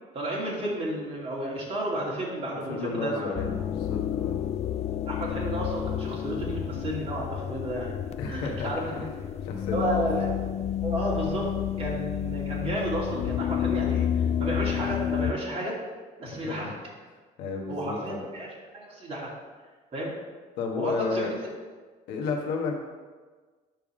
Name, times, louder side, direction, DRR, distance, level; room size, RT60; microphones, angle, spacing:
voice 1, 0.1-3.5 5.1-8.0 8.3-9.0 9.7-10.4 10.8-11.5 11.8-15.8 16.2-16.7 17.7-19.3 19.9-20.1 20.7-21.4, right 1 dB, 35° right, -4 dB, 2.6 m, -32 dB
voice 2, 2.7-4.4 8.2-9.1 9.4-10.0 16.3-16.7 17.4-18.3 20.6-21.3 22.1-22.7, left 4 dB, 90° left, 0 dB, 1.3 m, -32 dB
sound 1, 3.3-15.3, left 10 dB, 40° left, 0.4 m, -30 dB
9.1 x 3.4 x 6.2 m, 1.4 s
cardioid pair, 110°, 17 cm